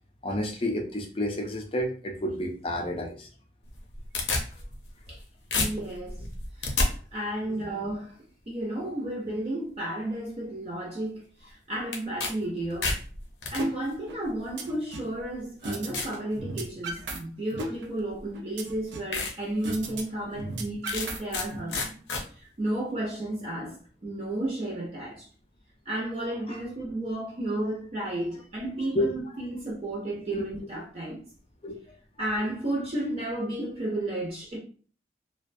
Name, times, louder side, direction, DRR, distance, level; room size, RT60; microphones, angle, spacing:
voice 1, 0.2-3.3 7.5-7.7 23.6-23.7 26.5-26.6 28.9-29.1 30.3-30.5 31.6-31.8 32.2-32.3, left 1 dB, 30° left, 0.4 m, -30 dB
sound 1, 3.7-5.2 5.5-6.9 11.9-12.3 12.6-13.6 14.5-14.6 15.2-15.3 15.9-16.2 16.7-17.0 18.2-18.3 18.7-18.8 19.1-19.3 19.8-19.9 20.9-21.5 21.7-22.2, left 3 dB, 75° left, 0.6 m, -29 dB
voice 2, 5.6-6.2 6.6-8.2 8.5-12.9 13.5-21.8 22.3-23.8 24.0-25.3 25.9-31.2 32.2-34.6, right 1 dB, 35° right, 0.5 m, -32 dB
sound 2, 13.6-13.7 14.1-15.1 15.6-16.0 16.3-17.2 17.5-19.1 19.6-20.0 20.3-21.6, right 2 dB, 85° right, 0.5 m, -35 dB
2.4 x 2.1 x 2.5 m
head